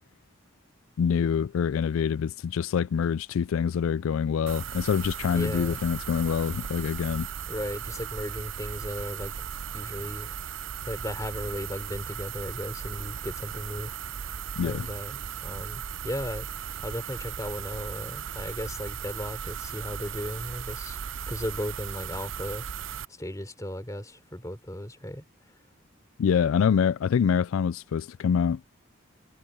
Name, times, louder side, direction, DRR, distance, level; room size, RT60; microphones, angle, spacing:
voice 1, 1.0-7.3 14.6-14.9 26.2-28.6, left 7 dB, 80° left, 0.3 m, -25 dB
sound 1, 4.5-23.0, right 8 dB, 65° right, 0.6 m, -37 dB
voice 2, 5.3-5.8 7.5-9.5 9.7-10.4 10.8-13.9 14.6-16.5 16.8-21.0 21.3-22.7 23.1-25.2, equal, 15° left, 3.6 m, -36 dB
head